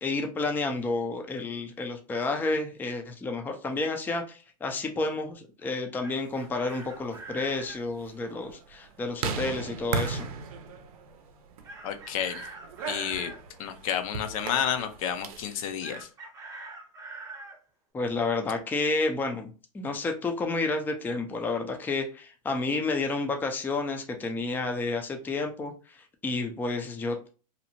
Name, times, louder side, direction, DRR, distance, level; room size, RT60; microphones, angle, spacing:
voice 1, 0.0-10.3 17.9-27.3, left 3 dB, 10° left, 4 dB, 0.4 m, -30 dB
Chicken rooster, 6.0-7.8 11.6-13.4 15.8-17.6, right 3 dB, 15° right, 0.7 m, -43 dB
sound 1, 6.5-15.6, right 5 dB, 70° right, 0.5 m, -37 dB
voice 2, 11.8-12.5 12.9-13.3 13.6-16.1, left 8 dB, 65° left, 8 dB, 0.5 m, -30 dB
2.7 x 2.0 x 2.8 m, 0.35 s
hypercardioid pair, 120°, 19 cm